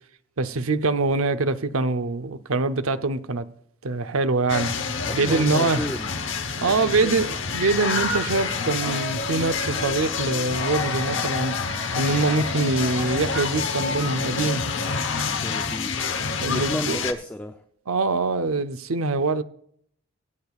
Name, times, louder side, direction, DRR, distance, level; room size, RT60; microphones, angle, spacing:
voice 1, 0.4-3.4 3.8-4.7 5.1-5.8 6.6-7.3 7.5-14.6 16.4-17.0 17.9-19.4, right 3 dB, 85° right, 0.7 m, -24 dB
sound 1, 4.5-17.1, left 4 dB, 60° left, 1.0 m, -27 dB
voice 2, 5.1-6.2 6.6-7.2 15.3-16.0 16.5-17.6, equal, 10° left, 0.5 m, -33 dB
23.0 x 8.7 x 2.4 m
head